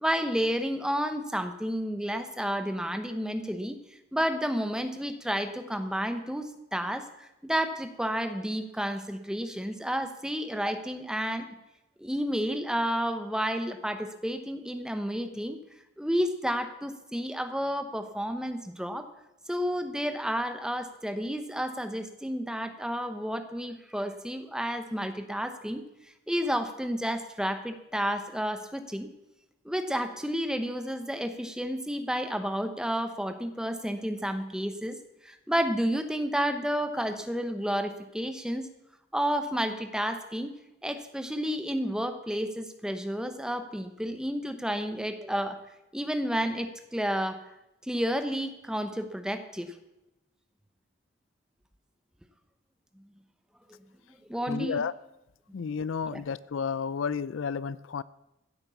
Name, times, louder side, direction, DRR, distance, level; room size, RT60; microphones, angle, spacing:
voice 1, 0.0-3.8 4.1-11.5 12.0-15.6 16.0-19.1 19.5-25.8 26.3-29.1 29.6-35.0 35.2-38.7 39.1-40.5 40.8-45.6 45.9-47.4 47.8-49.8 54.3-54.8 56.1-56.2, equal, 5° right, 8 dB, 0.9 m, -31 dB
voice 2, 54.5-54.9 55.5-58.0, left 6 dB, 75° left, 19 dB, 0.4 m, -31 dB
15.5 x 8.9 x 7.1 m, 0.93 s
head